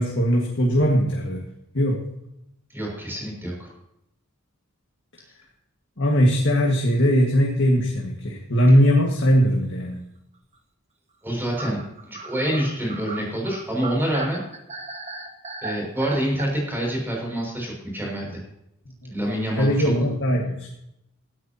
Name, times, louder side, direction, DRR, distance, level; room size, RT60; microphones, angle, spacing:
voice 1, 0.0-1.4 1.7-2.0 6.0-10.0 19.0-19.1 19.6-20.7, equal, 60° left, -1 dB, 2.0 m, -20 dB
voice 2, 2.7-3.7 11.2-14.4 15.6-18.4 19.1-19.9, right 1 dB, 10° right, -2 dB, 6.5 m, -27 dB
sound 1, 7.3-7.6 7.8-7.9 8.2-8.3 9.2-9.5 11.6-16.5, right 2 dB, 30° right, 1.3 m, -36 dB
17.5 x 12.5 x 3.0 m, 0.82 s
head